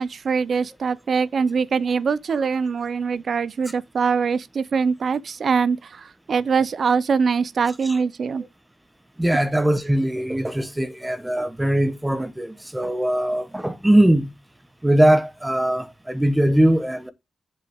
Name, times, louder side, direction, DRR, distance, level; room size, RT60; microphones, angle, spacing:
voice 1, 0.0-8.4, right 5 dB, 50° right, 0.5 m, -23 dB
voice 2, 9.2-14.3 14.8-17.1, right 1 dB, 10° right, 1.0 m, -20 dB
7.7 x 7.6 x 3.5 m
wide cardioid pair, 150°, 0 cm